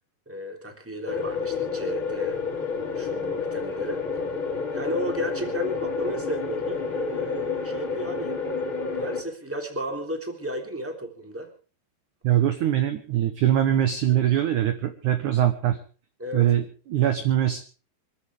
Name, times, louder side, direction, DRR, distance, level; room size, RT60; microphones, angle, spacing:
voice 1, 0.3-2.4 2.9-4.0 4.7-8.4 8.9-11.5 14.1-14.2 16.2-16.5, equal, 5° right, 3 dB, 2.6 m, -33 dB
sound 1, 1.1-9.2, left 4 dB, 35° left, 2.6 m, -29 dB
voice 2, 12.2-15.8 16.3-17.6, right 11 dB, 70° right, 8 dB, 2.0 m, -22 dB
25.5 x 14.5 x 3.6 m, 0.36 s
omnidirectional pair, 4.8 m